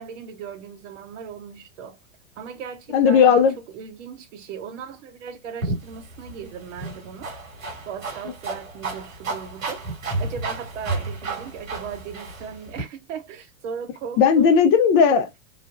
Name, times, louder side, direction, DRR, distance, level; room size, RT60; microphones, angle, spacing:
voice 1, 0.0-2.0 2.4-7.3 7.9-9.8 10.2-14.5, right 7 dB, 65° right, 0.8 m, -37 dB
voice 2, 2.9-3.5 14.2-15.4, left 6 dB, 35° left, 0.4 m, -16 dB
sound 1, 5.6-12.8, right 3 dB, 90° right, 1.8 m, -32 dB
3.3 x 2.0 x 2.3 m
hypercardioid pair, 110°, 39 cm